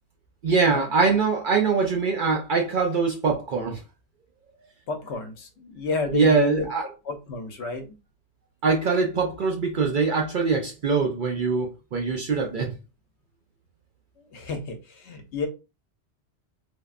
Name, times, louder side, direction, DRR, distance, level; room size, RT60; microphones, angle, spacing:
voice 1, 0.4-3.8 6.1-6.8 8.6-12.7, right 4 dB, 55° right, 0.6 m, -23 dB
voice 2, 4.9-6.7 7.1-8.0 14.3-15.5, left 4 dB, 75° left, 0.9 m, -31 dB
3.3 x 2.1 x 2.4 m
omnidirectional pair, 1.2 m